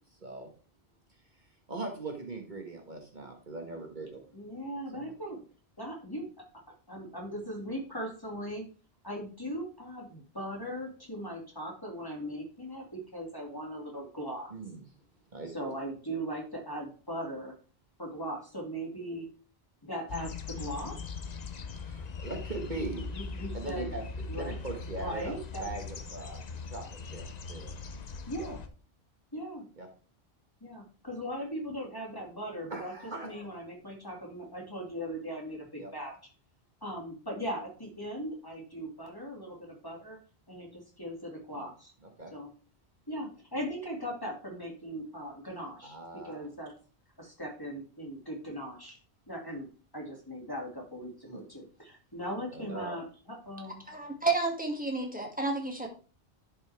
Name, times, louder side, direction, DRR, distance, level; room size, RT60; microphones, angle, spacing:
voice 1, 1.7-4.2 4.9-5.1 14.5-14.8 15.3-15.7 21.7-23.0 23.5-24.0 24.3-25.3 25.6-27.7 28.4-28.6 29.8-29.9 32.7-33.5 35.8-35.9 41.5-41.6 42.0-42.3 45.8-46.5 51.2-51.4 52.5-53.0, right 3 dB, 45° right, 2 dB, 1.5 m, -40 dB
voice 2, 4.3-5.4 5.8-6.3 6.7-8.6 9.0-14.5 15.5-17.5 18.0-19.3 19.8-21.0 23.1-23.9 24.3-24.5 25.0-25.7 28.3-28.6 29.3-29.7 30.6-32.9 33.2-36.2 36.8-40.2 40.5-41.9 42.3-42.5 43.1-46.0 46.2-46.7 47.2-49.0 49.3-49.7 49.9-53.8, equal, 20° left, -1 dB, 2.2 m, -39 dB
sound 1, 20.1-28.7, left 4 dB, 45° left, 0.8 m, -40 dB
voice 3, 53.9-55.9, right 3 dB, 10° right, 0 dB, 2.1 m, -31 dB
11.0 x 5.6 x 3.4 m, 0.37 s
omnidirectional pair, 1.1 m